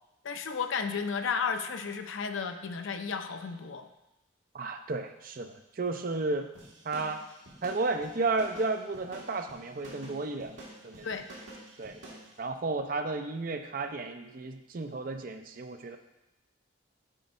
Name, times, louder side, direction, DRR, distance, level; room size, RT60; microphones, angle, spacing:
voice 1, 0.2-3.9 11.0-11.2, left 6 dB, 75° left, 7 dB, 0.5 m, -33 dB
voice 2, 4.5-6.5 6.8-7.2 7.6-10.6 10.8-11.1 11.8-12.0 12.4-16.0, right 3 dB, 45° right, 7 dB, 0.5 m, -33 dB
sound 1, 6.5-12.3, right 1 dB, 75° right, 1.7 m, -48 dB
8.2 x 3.5 x 5.2 m, 0.95 s
head